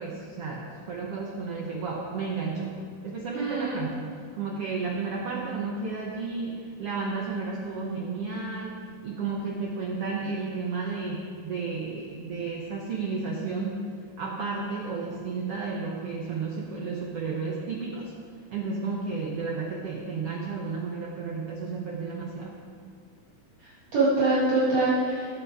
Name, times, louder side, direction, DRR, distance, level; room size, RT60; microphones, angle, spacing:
voice 1, 0.0-13.9 14.2-18.1 18.5-22.6, right 4 dB, 90° right, -2 dB, 1.3 m, -32 dB
voice 2, 3.3-3.8 23.9-25.3, right 2 dB, 50° right, -9 dB, 2.6 m, -24 dB
15.5 x 8.0 x 4.8 m, 2.1 s
omnidirectional pair, 4.2 m